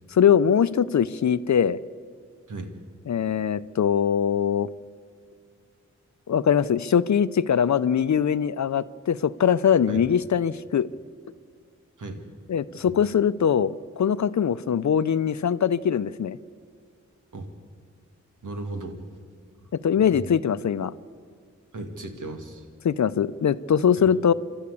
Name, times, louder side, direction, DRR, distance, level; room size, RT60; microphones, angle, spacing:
voice 1, 0.1-1.8 3.1-4.7 6.3-10.9 12.5-16.4 19.8-20.9 22.8-24.3, left 8 dB, 65° left, 15 dB, 0.6 m, -22 dB
voice 2, 18.4-19.0 20.0-20.3 21.7-22.7, right 2 dB, 85° right, 5 dB, 2.3 m, -36 dB
27.5 x 12.5 x 8.4 m, 2.1 s
cardioid pair, 60°, 30 cm